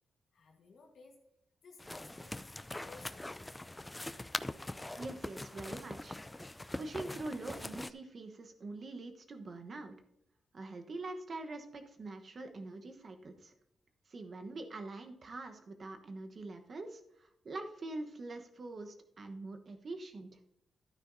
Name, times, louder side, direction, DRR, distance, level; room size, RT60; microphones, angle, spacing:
voice 1, 0.3-1.2 1.6-3.4, left 4 dB, 70° left, 2 dB, 1.4 m, -58 dB
sound 1, 1.8-7.9, left 1 dB, 15° left, 0.4 m, -43 dB
voice 2, 5.0-6.2 6.8-9.9 10.5-13.5 14.1-20.3, right 2 dB, 50° right, 6 dB, 1.1 m, -44 dB
11.5 x 9.8 x 2.7 m, 0.82 s
cardioid pair, 95°, 0 cm